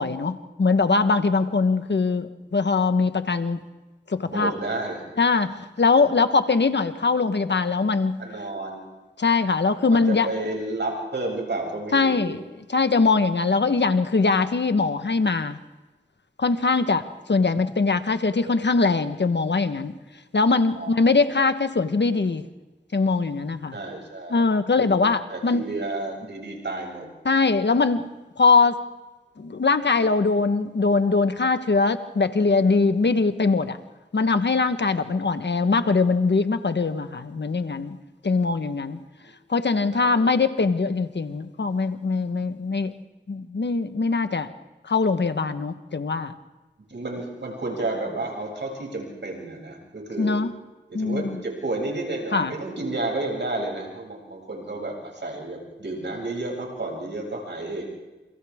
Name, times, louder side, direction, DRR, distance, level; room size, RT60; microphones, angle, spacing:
voice 1, 0.0-3.6 4.1-4.5 5.2-8.2 9.2-10.3 11.9-12.4 12.7-15.6 16.4-19.9 20.3-22.4 22.9-23.8 24.3-25.6 27.2-28.1 28.4-28.8 29.4-33.8 34.1-38.0 38.2-39.0 39.5-42.9 43.3-44.5 44.8-46.3 50.2-50.5 50.9-51.4 52.3-52.5, left 4 dB, 70° left, 9 dB, 1.3 m, -22 dB
voice 2, 4.2-5.0 8.2-8.9 9.9-12.3 20.8-21.1 23.7-24.4 24.8-24.9 25.3-27.1 35.1-35.3 39.2-39.3 39.9-40.2 46.9-50.4 50.9-57.8, right 2 dB, 75° right, 0 dB, 7.6 m, -31 dB
29.0 x 28.5 x 3.7 m, 1.1 s
cardioid pair, 45°, 19 cm